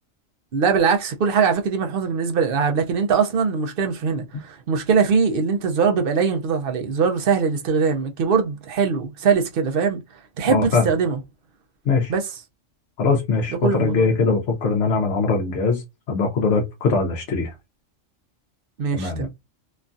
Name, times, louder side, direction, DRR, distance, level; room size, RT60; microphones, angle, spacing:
voice 1, 0.5-10.0 10.4-11.2 12.1-12.3 13.6-14.2 18.8-19.3, right 5 dB, 55° right, 0.7 m, -21 dB
voice 2, 10.5-10.9 11.9-12.1 13.0-15.8 16.1-17.5 18.9-19.3, left 4 dB, 65° left, 1.0 m, -21 dB
3.1 x 2.3 x 2.5 m
omnidirectional pair, 1.4 m